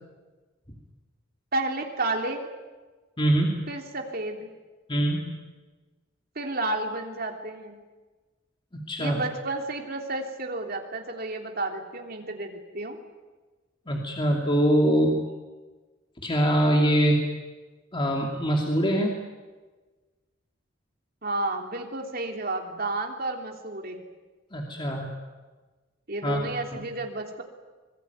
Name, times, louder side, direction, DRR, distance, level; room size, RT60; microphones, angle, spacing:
voice 1, 1.5-2.5 3.7-4.5 6.3-7.8 9.0-13.0 21.2-24.0 26.1-27.4, right 2 dB, 50° right, 3 dB, 3.4 m, -31 dB
voice 2, 3.2-3.7 4.9-5.5 8.9-9.2 13.9-15.2 16.2-17.2 17.9-19.2 24.5-25.1 26.2-26.4 26.7-26.8, right 1 dB, 25° left, 0 dB, 2.8 m, -23 dB
25.0 x 21.5 x 9.5 m, 1.3 s
head